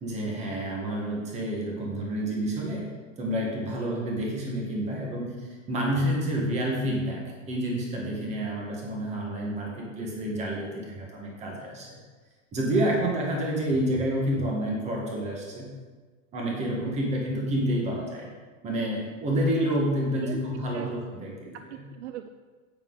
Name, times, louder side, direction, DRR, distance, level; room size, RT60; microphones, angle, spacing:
voice 1, 0.0-2.9 3.2-12.0 12.5-15.7 16.3-18.3 18.6-21.5, right 1 dB, 15° right, -1 dB, 1.6 m, -29 dB
voice 2, 16.8-17.5 20.1-20.4 20.7-20.9 21.5-22.3, right 12 dB, 55° right, 8 dB, 0.5 m, -40 dB
8.7 x 8.5 x 4.0 m, 1.4 s
supercardioid pair, 170°, 41 cm